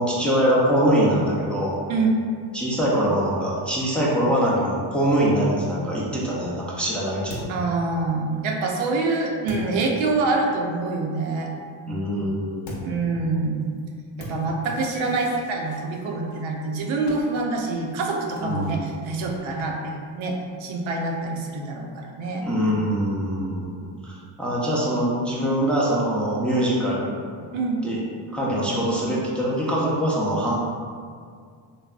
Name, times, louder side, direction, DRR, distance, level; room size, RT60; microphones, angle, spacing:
voice 1, 0.0-1.8 2.5-7.5 11.9-13.1 18.4-18.9 22.4-23.7 24.0-27.2 27.8-28.0 28.3-30.6, equal, ahead, -6 dB, 0.4 m, -23 dB
voice 2, 1.9-2.2 7.5-11.5 12.8-13.7 14.2-22.5 27.5-27.8, right 3 dB, 70° right, 0 dB, 0.6 m, -26 dB
sound 1, 6.7-10.6 12.6-21.5, left 1 dB, 65° left, 0.8 m, -43 dB
3.3 x 2.0 x 2.4 m, 2.1 s
supercardioid pair, 70°, 49 cm